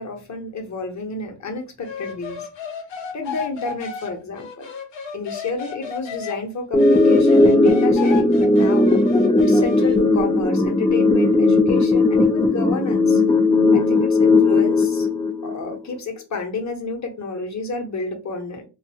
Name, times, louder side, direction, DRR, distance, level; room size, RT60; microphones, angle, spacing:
voice 1, 0.0-2.5 3.1-4.7 5.1-8.9 9.4-13.2 13.7-15.1 15.4-18.6, left 3 dB, 40° left, 4 dB, 0.9 m, -30 dB
sound 1, 1.8-6.4 6.8-10.0, left 6 dB, 70° left, 0.9 m, -33 dB
sound 2, 6.7-15.8, left 2 dB, 10° left, 0.4 m, -17 dB
2.6 x 2.3 x 2.7 m, 0.30 s
cardioid pair, 100°, 46 cm